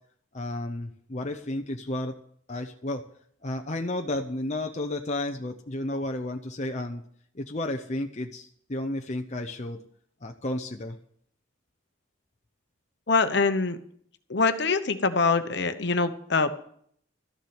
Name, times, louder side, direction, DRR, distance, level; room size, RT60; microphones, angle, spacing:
voice 1, 0.3-2.2 2.5-3.0 3.4-7.0 7.3-9.8 10.2-11.0, left 1 dB, 35° left, 4 dB, 0.7 m, -32 dB
voice 2, 13.1-13.8 14.3-16.5, left 4 dB, 55° left, 10 dB, 1.0 m, -24 dB
13.5 x 7.3 x 9.4 m, 0.63 s
head